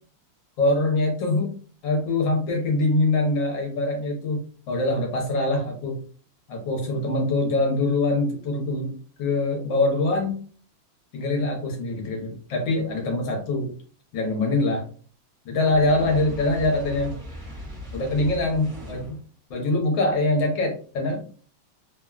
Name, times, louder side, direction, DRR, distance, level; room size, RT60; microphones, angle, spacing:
voice 1, 0.6-1.5 1.8-6.0 6.5-10.4 11.1-13.7 14.1-14.8 15.4-17.2 17.9-19.2 19.5-21.2, left 2 dB, 65° left, 1 dB, 1.4 m, -24 dB
Fire, 15.6-19.2, equal, 45° right, 1.0 m, -38 dB
3.6 x 2.1 x 2.3 m, 0.42 s
omnidirectional pair, 2.4 m